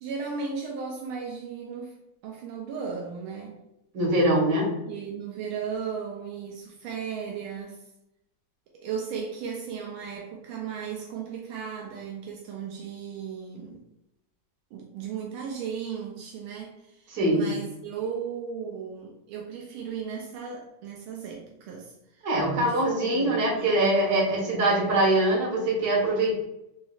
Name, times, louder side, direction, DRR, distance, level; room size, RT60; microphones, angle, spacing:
voice 1, 0.0-2.0 2.2-3.6 4.9-7.8 8.7-13.8 14.7-22.3 22.6-22.8 23.1-24.3, right 6 dB, 85° right, -1 dB, 1.4 m, -36 dB
voice 2, 3.9-4.8 17.1-17.5 22.2-26.4, right 1 dB, 55° right, -4 dB, 1.6 m, -23 dB
4.1 x 3.0 x 2.3 m, 0.87 s
omnidirectional pair, 2.3 m